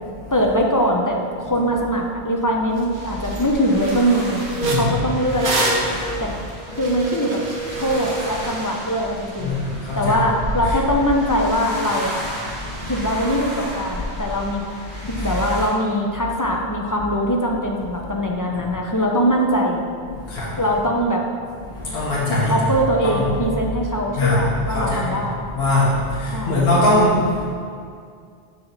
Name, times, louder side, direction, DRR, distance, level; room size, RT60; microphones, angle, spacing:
voice 1, 0.3-4.4 4.7-5.5 6.2-6.3 6.7-7.4 7.7-9.6 9.9-12.2 12.9-14.7 15.1-19.8 20.6-21.2 22.3-25.4 26.3-26.6, equal, 25° left, 0 dB, 0.5 m, -22 dB
sound 1, 2.8-2.9 3.2-3.5 3.8-8.6, right 2 dB, 60° right, 1.0 m, -27 dB
sound 2, 2.9-15.7, equal, 80° right, 2.1 m, -33 dB
voice 2, 4.6-5.0 5.9-6.4 7.8-7.9 9.4-10.2 10.6-10.8 12.5-13.0 14.9-15.3 20.2-20.6 21.7-22.7 23.0-23.3 24.1-25.1 25.5-27.4, left 2 dB, 70° left, -6 dB, 1.2 m, -22 dB
5.7 x 5.3 x 4.0 m, 2.2 s
omnidirectional pair, 1.1 m